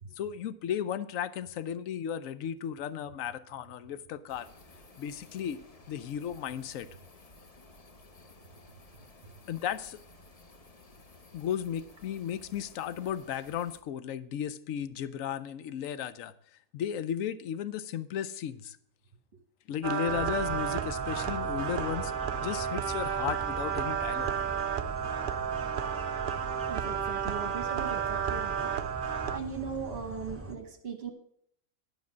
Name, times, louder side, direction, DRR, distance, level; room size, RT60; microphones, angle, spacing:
voice 1, 0.2-4.5 5.0-5.6 5.9-6.9 9.5-10.0 11.3-16.3 16.7-18.8 19.7-22.1 22.4-24.3, left 9 dB, 65° left, 14 dB, 1.0 m, -35 dB
sound 1, 4.3-13.8, left 2 dB, 30° left, 0.8 m, -55 dB
sound 2, 19.8-29.4, right 8 dB, 80° right, 0.4 m, -32 dB
sound 3, 20.1-30.5, right 4 dB, 10° right, 1.0 m, -42 dB
voice 2, 26.7-31.1, right 5 dB, 45° right, 4 dB, 1.5 m, -39 dB
12.0 x 5.2 x 7.3 m, 0.67 s
omnidirectional pair, 1.6 m